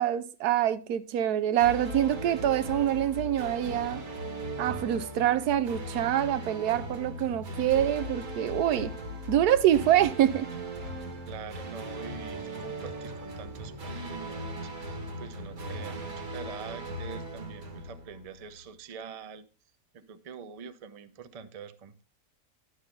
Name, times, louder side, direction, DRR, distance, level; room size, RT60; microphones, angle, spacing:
voice 1, 0.0-4.0 4.6-8.9 9.3-10.5, right 11 dB, 90° right, 1.2 m, -25 dB
sound 1, 1.6-18.6, right 1 dB, 65° right, 1.9 m, -38 dB
voice 2, 11.3-19.4 19.9-22.0, right 6 dB, 45° right, 0.5 m, -44 dB
11.0 x 6.6 x 3.8 m
omnidirectional pair, 1.6 m